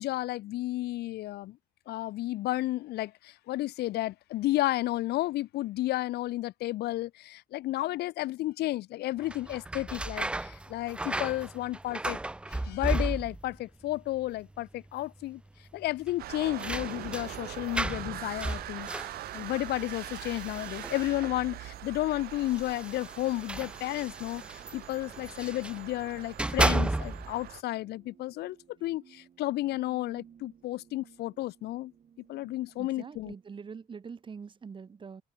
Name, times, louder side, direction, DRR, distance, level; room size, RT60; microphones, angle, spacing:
voice 1, 0.0-1.6 1.9-12.2 12.5-15.4 15.7-18.9 19.3-28.6 28.8-31.9 32.3-33.3, left 16 dB, 75° left, 1.0 m, -32 dB
sound 1, 9.2-13.6 13.9-14.6 14.9-15.0 16.0-21.5 22.3-25.8 26.2-27.4, right 2 dB, 5° right, 0.3 m, -34 dB
sound 2, 16.2-27.6, right 15 dB, 65° right, 0.7 m, -43 dB
sound 3, 27.6-33.7, right 8 dB, 45° right, 6.4 m, -59 dB
voice 2, 32.8-35.2, right 5 dB, 30° right, 1.3 m, -44 dB
open air
cardioid pair, 110°, 17 cm